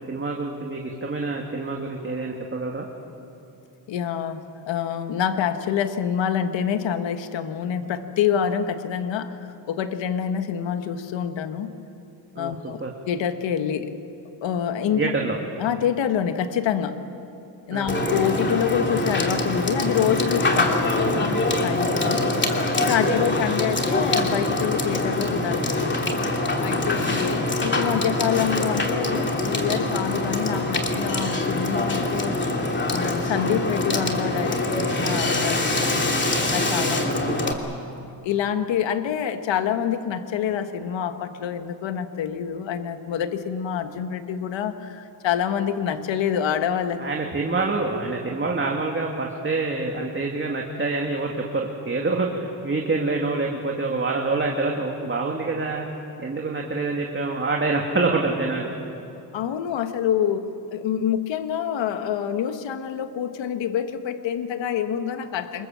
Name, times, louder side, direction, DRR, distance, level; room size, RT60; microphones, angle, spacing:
voice 1, 0.1-2.9 12.4-12.5 12.8-12.9 14.9-15.4 17.7-18.1 22.0-22.3 23.0-23.3 26.8-27.1 36.9-37.5 47.0-55.9 56.2-58.7, right 3 dB, 25° right, 0 dB, 2.4 m, -26 dB
voice 2, 3.9-9.3 9.7-11.7 12.4-12.8 13.0-13.9 14.4-15.0 15.6-17.0 17.7-21.3 21.6-22.2 22.8-26.0 26.6-32.5 32.9-36.2 36.5-37.1 38.2-47.0 59.3-60.4 60.7-65.7, left 8 dB, 85° left, 8 dB, 1.5 m, -26 dB
Water / Water tap faucet / Sink (filling or washing), 17.9-37.5, left 2 dB, 25° left, 2.8 m, -24 dB
27.0 x 22.5 x 7.4 m, 2.7 s
cardioid pair, 95°, 44 cm